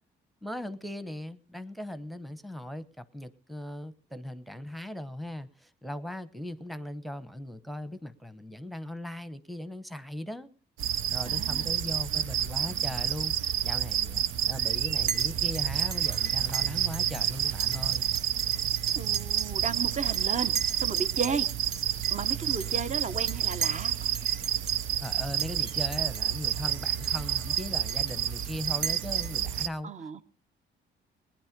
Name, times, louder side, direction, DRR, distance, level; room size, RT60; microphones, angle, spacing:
voice 1, 0.4-10.5 11.1-18.1 25.0-30.2, left 1 dB, ahead, 12 dB, 0.9 m, -39 dB
sound 1, 10.8-29.7, right 10 dB, 85° right, 0.7 m, -29 dB
voice 2, 11.3-11.7 18.9-21.5 22.1-24.1 29.8-30.2, right 5 dB, 35° right, 12 dB, 1.0 m, -34 dB
Chink clink, 15.1-15.3 15.5-17.2 17.6-19.6 19.9-20.2 20.5-23.9 24.1-24.8 25.0-25.1 25.4-26.2 26.5-26.6 27.0-29.6, right 7 dB, 55° right, 1.4 m, -37 dB
19.0 x 10.5 x 5.2 m, 0.40 s
cardioid pair, 90°, 20 cm